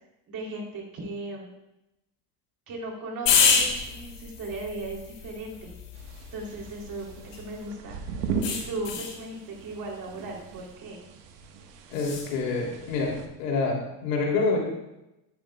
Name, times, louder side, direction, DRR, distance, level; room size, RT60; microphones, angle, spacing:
voice 1, 0.3-1.5 2.7-5.8 6.3-8.0 8.4-11.0, right 2 dB, 45° right, -1 dB, 3.3 m, -37 dB
sound 1, 3.3-7.7 8.4-9.2 11.9-12.3, left 5 dB, 60° left, 3.5 m, -28 dB
sound 2, 5.9-13.3, right 5 dB, 75° right, 1.5 m, -38 dB
voice 2, 11.9-14.6, left 3 dB, 80° left, -1 dB, 3.1 m, -27 dB
13.5 x 10.0 x 2.3 m, 0.93 s
hypercardioid pair, 90°, 48 cm